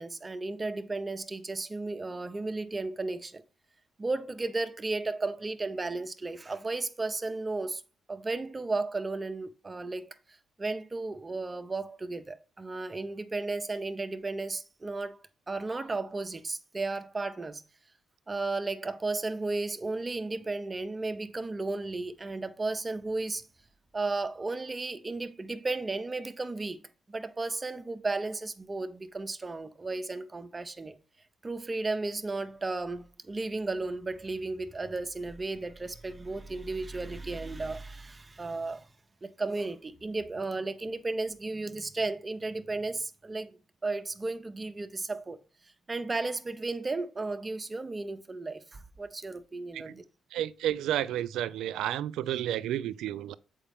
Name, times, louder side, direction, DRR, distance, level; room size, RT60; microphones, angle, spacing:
voice 1, 0.0-3.4 4.0-7.8 8.1-15.2 15.5-17.6 18.3-23.5 23.9-26.8 27.1-31.0 31.4-38.9 39.2-43.6 43.8-50.0, right 3 dB, 25° right, 0.6 m, -34 dB
voice 2, 50.3-53.4, right 12 dB, 85° right, 0.4 m, -31 dB
7.3 x 4.9 x 3.5 m
cardioid pair, 90°, 0 cm